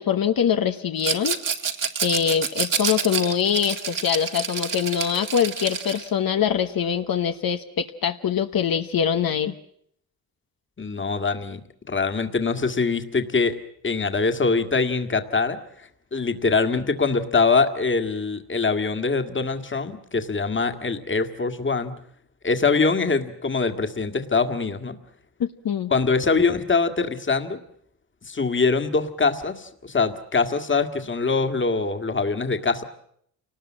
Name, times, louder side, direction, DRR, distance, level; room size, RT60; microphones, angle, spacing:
voice 1, 0.0-1.4 2.0-9.5 25.4-25.9, left 8 dB, 70° left, 7 dB, 1.1 m, -23 dB
Rattle, 1.0-6.1, right 6 dB, 60° right, 2.2 m, -28 dB
voice 2, 10.8-11.6 11.9-13.6 13.8-21.9 22.4-25.0 25.9-27.6 28.3-32.8, left 4 dB, 30° left, 8 dB, 1.9 m, -23 dB
29.5 x 19.5 x 7.5 m, 0.69 s
wide cardioid pair, 120°, 36 cm